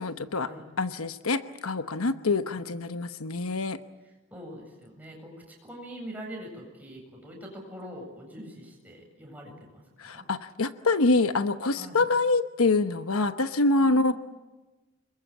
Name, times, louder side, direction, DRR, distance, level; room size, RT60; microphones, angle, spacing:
voice 1, 0.0-0.5 0.8-3.8 10.0-14.1, left 3 dB, 85° left, 9 dB, 1.0 m, -25 dB
voice 2, 2.0-2.7 4.0-10.3 11.8-12.0 13.8-14.2, equal, 10° right, 0 dB, 7.7 m, -44 dB
27.0 x 22.5 x 8.8 m, 1.2 s
head